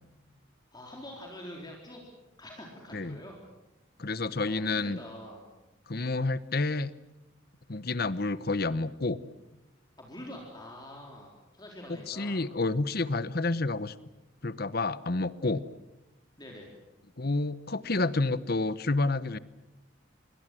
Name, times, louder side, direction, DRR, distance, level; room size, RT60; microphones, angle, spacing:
voice 1, 0.7-2.0 2.4-3.3 4.5-5.5 10.0-12.5 16.4-16.7, left 1 dB, 20° left, 0 dB, 3.9 m, -45 dB
voice 2, 4.0-5.0 5.9-6.9 7.7-9.2 12.1-13.9 14.4-15.7 17.2-19.4, left 2 dB, 50° left, 16 dB, 1.0 m, -29 dB
27.5 x 23.0 x 7.7 m, 0.96 s
head